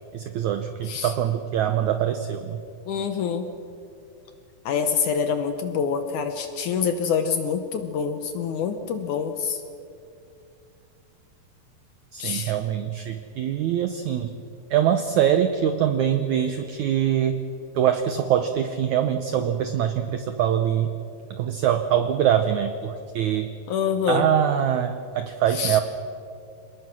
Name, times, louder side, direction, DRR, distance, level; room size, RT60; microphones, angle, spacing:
voice 1, 0.1-2.6 12.1-14.3 14.7-17.4 17.7-20.9 21.3-23.5 24.1-25.8, right 9 dB, 85° right, 8 dB, 1.7 m, -23 dB
voice 2, 2.9-3.5 4.7-9.6 12.2-12.5 23.7-24.3 25.6-25.8, left 6 dB, 70° left, 8 dB, 2.0 m, -26 dB
27.5 x 19.5 x 6.2 m, 2.5 s
omnidirectional pair, 4.5 m